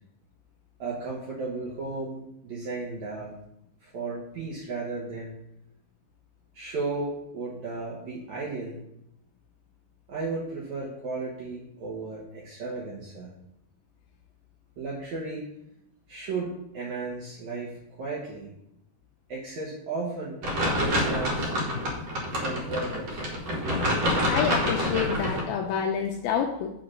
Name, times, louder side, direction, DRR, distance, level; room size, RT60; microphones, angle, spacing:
voice 1, 0.8-3.4 3.8-5.3 6.5-8.8 10.1-13.3 14.8-15.5 16.1-18.5 19.3-20.4 20.8-21.5 22.3-23.3, right 3 dB, 70° right, -4 dB, 1.7 m, -34 dB
sound 1, 20.4-25.4, equal, 55° right, 2.0 m, -27 dB
voice 2, 24.3-26.7, left 7 dB, 85° left, 2 dB, 2.1 m, -28 dB
6.9 x 3.8 x 6.3 m, 0.81 s
omnidirectional pair, 4.7 m